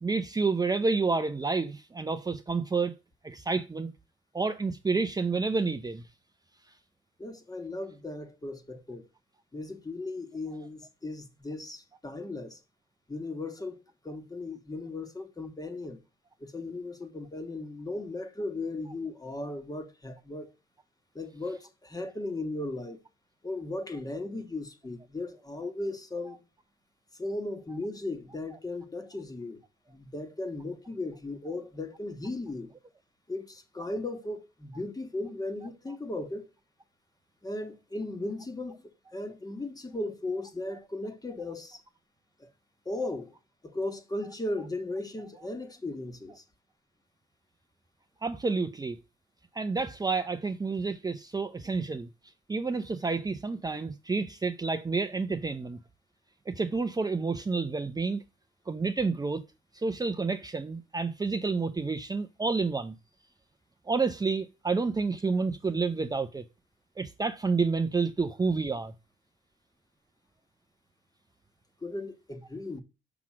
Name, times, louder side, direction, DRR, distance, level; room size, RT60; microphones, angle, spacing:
voice 1, 0.0-2.9 3.2-3.9 4.3-6.0 48.2-49.0 49.5-52.1 52.5-55.8 56.5-58.2 58.7-59.4 59.7-62.9 63.9-66.4 67.0-68.9, right 4 dB, 20° right, 0.7 m, -29 dB
voice 2, 7.2-9.1 9.5-12.6 13.1-16.0 16.4-20.5 21.2-23.0 23.4-26.5 27.1-29.6 29.9-32.7 33.3-36.5 37.4-38.8 39.1-41.8 42.4-42.5 42.9-43.3 43.6-46.4 71.8-72.8, left 2 dB, 20° left, 1.6 m, -37 dB
6.0 x 5.8 x 6.2 m
cardioid pair, 90°, 20 cm